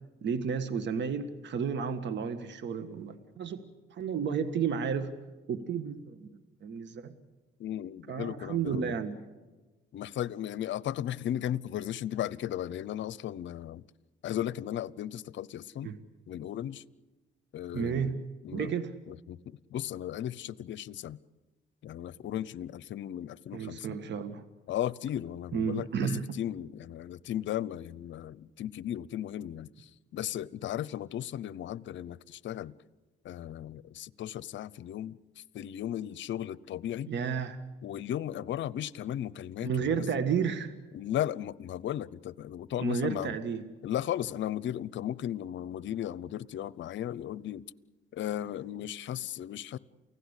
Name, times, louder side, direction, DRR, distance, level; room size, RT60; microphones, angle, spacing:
voice 1, 0.2-3.6 3.9-5.1 5.5-6.3 6.6-7.1 8.1-9.3 15.8-16.0 17.7-18.2 18.5-18.9 23.5-24.4 25.5-26.2 37.1-37.6 39.6-40.7 42.8-43.6, right 6 dB, 65° right, 1.7 m, -32 dB
voice 2, 7.6-9.0 9.9-13.8 14.2-15.9 16.3-16.8 17.5-18.7 19.1-21.2 21.8-24.0 24.7-32.7 33.2-35.2 35.5-37.1 37.8-40.1 40.9-43.4 43.8-47.7 48.1-49.8, left 11 dB, 70° left, 0.7 m, -36 dB
29.5 x 16.5 x 8.3 m
cardioid pair, 90°, 20 cm